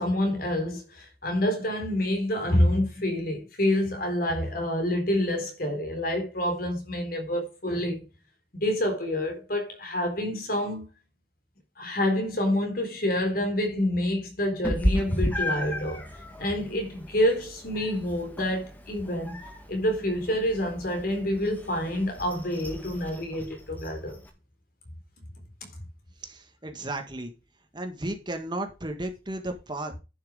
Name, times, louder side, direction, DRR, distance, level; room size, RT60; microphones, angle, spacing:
voice 1, 0.0-8.0 8.5-10.9 11.8-16.0 16.4-19.4 19.7-24.2, left 1 dB, 55° left, 3.9 m, -27 dB
Meow, 14.6-24.3, equal, 10° left, 1.8 m, -34 dB
voice 2, 26.2-27.3 27.7-30.0, right 1 dB, 25° right, 1.7 m, -34 dB
11.0 x 6.4 x 5.0 m
head